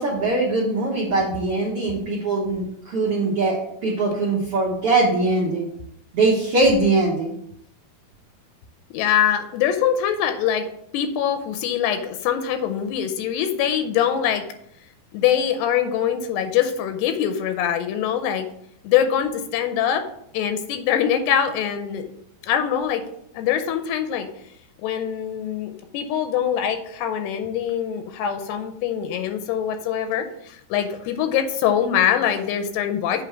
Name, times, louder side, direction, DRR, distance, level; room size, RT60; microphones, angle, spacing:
voice 1, 0.0-5.7 6.1-7.3, right 2 dB, 90° right, -4 dB, 1.2 m, -21 dB
voice 2, 8.9-10.7 10.9-14.4 15.1-18.5 18.8-20.0 20.3-22.1 22.4-23.0 23.3-24.3 24.8-33.2, left 9 dB, 85° left, 8 dB, 2.6 m, -23 dB
8.4 x 3.5 x 5.9 m, 0.73 s
omnidirectional pair, 4.8 m